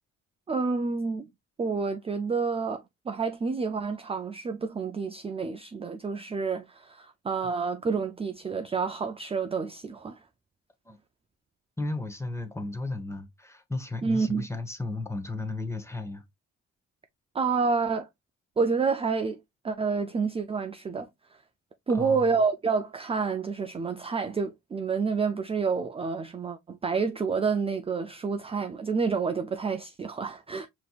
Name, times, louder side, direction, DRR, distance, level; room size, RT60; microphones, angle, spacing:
voice 1, 0.5-1.3 1.6-10.2 14.0-14.5 17.3-18.1 18.6-21.4 21.9-30.7, right 5 dB, 20° right, 0.4 m, -29 dB
voice 2, 11.8-16.2 21.9-22.3, left 2 dB, 10° left, 0.9 m, -34 dB
5.1 x 3.0 x 2.3 m
cardioid pair, 90°, 30 cm